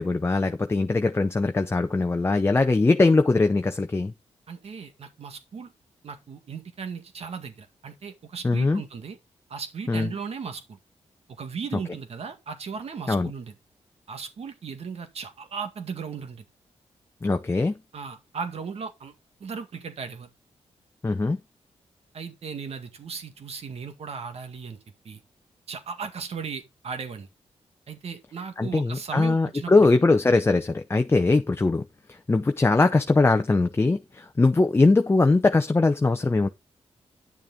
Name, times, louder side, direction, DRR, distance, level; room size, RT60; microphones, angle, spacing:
voice 1, 0.0-4.1 8.4-8.8 9.9-10.1 13.1-13.3 17.2-17.8 21.0-21.4 28.6-31.9 32.3-36.5, left 3 dB, 20° left, 0.7 m, -21 dB
voice 2, 4.5-5.7 6.0-9.2 9.5-10.8 11.4-13.5 14.1-16.4 17.9-19.1 19.4-20.3 22.1-24.8 25.0-25.2 25.7-27.3 27.9-29.9, right 5 dB, 65° right, 1.9 m, -36 dB
10.5 x 6.7 x 3.7 m
wide cardioid pair, 105°, 11 cm